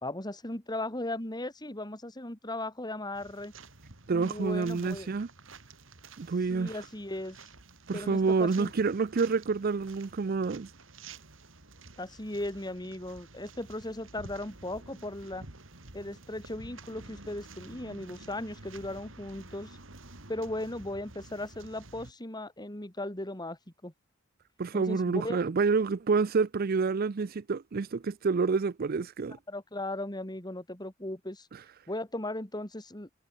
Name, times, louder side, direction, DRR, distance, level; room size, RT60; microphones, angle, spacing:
voice 1, 0.0-3.5 4.1-5.1 6.5-7.4 7.9-8.7 12.0-15.5 15.9-19.8 20.3-23.9 24.7-25.4 29.5-31.5 31.9-33.1, left 1 dB, 20° left, 3.5 m, -37 dB
sound 1, 3.2-22.1, right 3 dB, 75° right, 3.6 m, -50 dB
voice 2, 4.1-5.3 6.2-6.7 7.9-10.7 24.6-29.4, right 4 dB, 50° right, 0.5 m, -28 dB
head